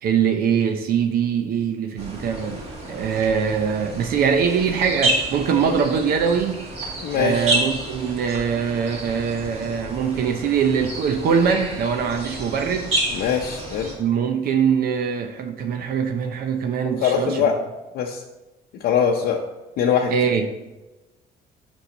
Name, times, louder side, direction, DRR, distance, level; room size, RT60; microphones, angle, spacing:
voice 1, 0.0-6.6 7.1-12.9 14.0-17.4 20.1-20.5, right 7 dB, 60° right, 6 dB, 0.6 m, -22 dB
sound 1, 2.0-13.9, right 2 dB, 40° right, 2.4 m, -30 dB
voice 2, 7.0-7.5 13.1-13.9 17.0-17.6 17.9-18.2 18.8-19.4 19.8-20.1, left 7 dB, 70° left, 0 dB, 0.7 m, -22 dB
7.3 x 5.5 x 4.0 m, 1.1 s
cardioid pair, 110°, 17 cm